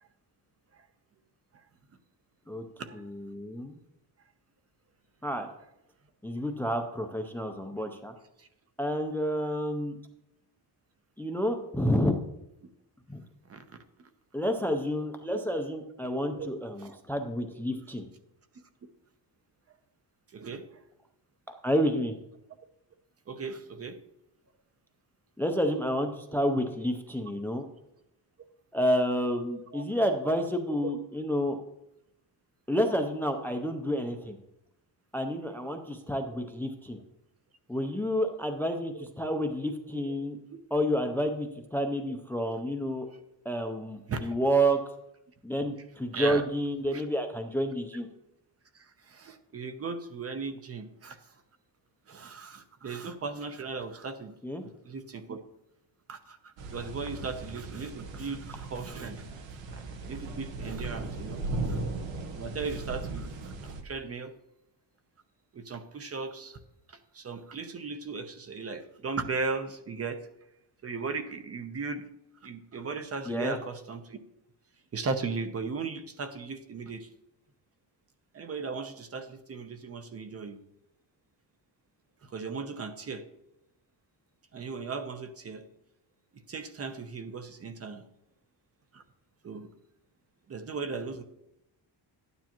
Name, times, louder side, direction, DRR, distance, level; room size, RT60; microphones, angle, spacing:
voice 1, 2.9-3.8 5.2-5.5 6.2-8.1 8.8-10.0 11.2-12.1 13.1-13.2 14.3-18.1 21.6-22.2 25.4-27.6 28.7-31.6 32.7-34.4 35.1-37.0 37.7-40.4 40.7-43.1 43.4-44.8 45.4-48.1 54.4-54.6 73.3-73.5, equal, 5° left, 5 dB, 0.5 m, -29 dB
voice 2, 16.1-16.5 16.8-16.9 20.3-20.7 23.3-24.0 29.7-29.8 30.8-30.9 40.1-40.2 44.1-44.3 46.1-46.4 46.9-47.0 48.7-51.2 52.1-54.3 54.6-55.4 56.1-59.2 59.7-61.8 62.3-64.3 65.5-66.6 66.9-70.3 70.8-72.0 72.4-74.2 74.9-77.1 78.3-80.6 82.2-83.2 84.5-85.7 86.5-88.0 88.9-89.0 89.4-89.7 90.5-91.2, right 4 dB, 35° right, 8 dB, 0.7 m, -37 dB
sound 1, 56.6-63.8, right 2 dB, 85° right, 1.3 m, -37 dB
12.5 x 9.6 x 3.0 m, 0.84 s
wide cardioid pair, 180°, 43 cm